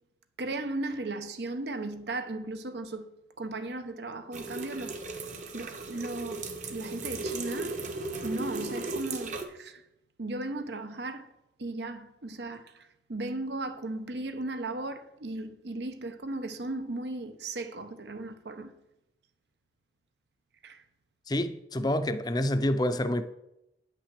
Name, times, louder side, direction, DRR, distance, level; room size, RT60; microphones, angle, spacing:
voice 1, 0.4-3.1 3.4-5.0 5.5-7.8 8.2-9.8 10.2-11.3 11.6-18.7 20.6-20.8, right 2 dB, 75° right, 0.9 m, -36 dB
sound 1, 4.3-9.5, right 3 dB, 45° right, 1.0 m, -36 dB
voice 2, 21.3-23.2, left 1 dB, 20° left, 0.5 m, -27 dB
9.1 x 5.8 x 7.5 m
head